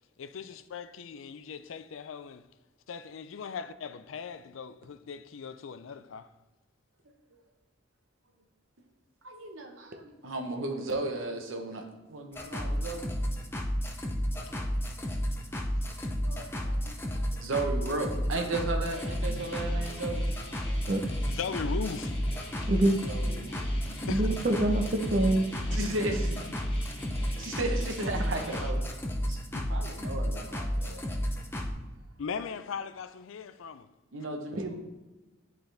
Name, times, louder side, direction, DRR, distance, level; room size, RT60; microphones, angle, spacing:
voice 1, 0.2-2.4 2.9-6.3 16.0-16.1 21.3-22.1 24.1-24.2 25.7-25.8 27.4-27.5 29.5-29.7 32.2-33.9, left 6 dB, 85° left, 0.4 m, -39 dB
voice 2, 9.2-13.1 14.6-14.7 16.2-16.8 17.1-20.2 23.1-23.6 25.7-26.4 27.4-28.8 29.3-31.0 34.1-34.8, right 2 dB, 80° right, 1.1 m, -35 dB
sound 1, 12.3-31.7, equal, 10° left, 0.6 m, -32 dB
sound 2, 18.9-28.7, equal, 30° left, 1.7 m, -45 dB
voice 3, 22.7-23.0 24.1-25.4 34.5-34.6, right 1 dB, 45° right, 0.8 m, -25 dB
10.5 x 3.9 x 3.4 m
head